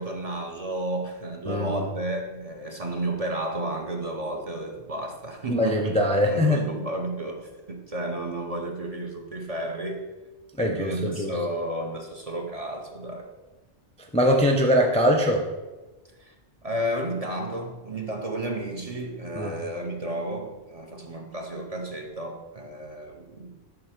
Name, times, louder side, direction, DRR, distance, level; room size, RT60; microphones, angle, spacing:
voice 1, 0.0-6.0 6.2-10.1 10.6-13.3 16.2-16.3 16.6-23.5, right 1 dB, 40° right, 2 dB, 0.7 m, -32 dB
voice 2, 1.5-1.9 5.5-6.6 10.6-11.4 14.1-15.4 19.4-19.5, equal, 10° left, 1 dB, 0.4 m, -22 dB
7.7 x 3.0 x 5.8 m, 1.2 s
omnidirectional pair, 1.1 m